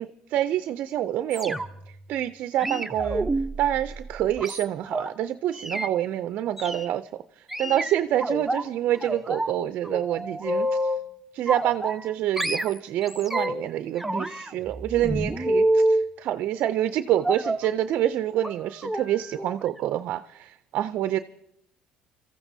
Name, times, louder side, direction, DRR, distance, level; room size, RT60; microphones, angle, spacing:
voice 1, 0.0-1.6 2.1-3.3 3.6-7.1 7.6-10.9 11.3-21.2, right 12 dB, 65° right, 11 dB, 0.4 m, -27 dB
sound 1, 1.3-1.9 2.6-5.1 5.5-5.9 6.6-6.9 7.5-8.6 9.0-9.5 9.8-11.1 11.5-12.1 12.4-13.7 14.0-16.1 17.2-17.7 18.4-18.5 18.8-19.0 19.4-19.6 19.9-20.0, right 1 dB, 5° right, 0.7 m, -28 dB
28.5 x 14.5 x 2.7 m, 0.80 s
supercardioid pair, 90°, 3 cm